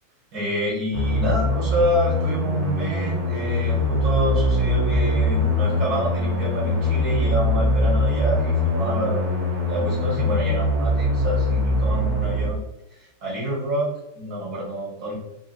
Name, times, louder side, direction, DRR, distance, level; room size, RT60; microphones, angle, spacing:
voice 1, 0.3-9.3 9.7-12.7 13.0-15.1, right 1 dB, 45° right, -6 dB, 1.8 m, -27 dB
sound 1, 0.9-12.5, left 1 dB, 85° right, 0.9 m, -22 dB
4.6 x 2.6 x 2.6 m, 0.97 s
omnidirectional pair, 3.5 m